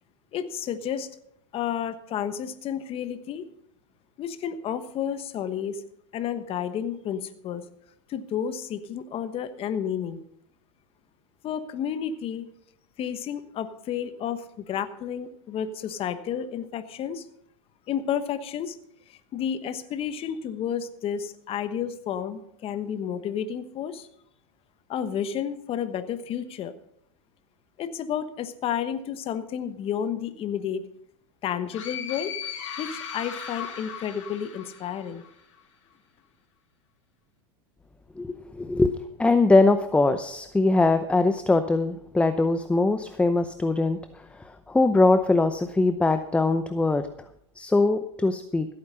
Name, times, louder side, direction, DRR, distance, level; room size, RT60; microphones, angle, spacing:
voice 1, 0.3-1.1 1.5-3.4 4.2-5.8 6.1-7.6 8.1-10.2 11.4-12.5 13.0-17.3 17.9-18.8 19.1-24.1 24.9-26.7 27.8-30.8 31.4-32.4 32.8-35.2, left 8 dB, 35° left, 10 dB, 1.2 m, -31 dB
sound 1, 31.7-35.4, left 8 dB, 80° left, 3.1 m, -37 dB
voice 2, 38.2-38.9 39.2-44.0 44.7-47.1 47.6-48.7, left 2 dB, 5° left, 10 dB, 0.7 m, -22 dB
15.5 x 8.8 x 5.6 m, 0.72 s
hypercardioid pair, 110°, 16 cm